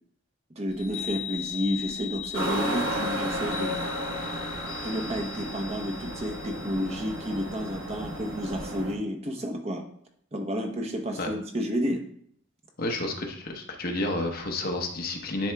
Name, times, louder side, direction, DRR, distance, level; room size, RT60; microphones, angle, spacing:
voice 1, 0.6-3.8 4.8-9.8 10.3-12.0, equal, 30° right, 4 dB, 0.9 m, -31 dB
Chime, 0.7-8.8, left 9 dB, 80° left, 1.6 m, -40 dB
sound 1, 2.3-8.9, right 1 dB, 75° right, 1.0 m, -33 dB
voice 2, 12.8-15.5, left 2 dB, 45° left, 3 dB, 0.9 m, -30 dB
10.0 x 3.5 x 3.4 m, 0.65 s
head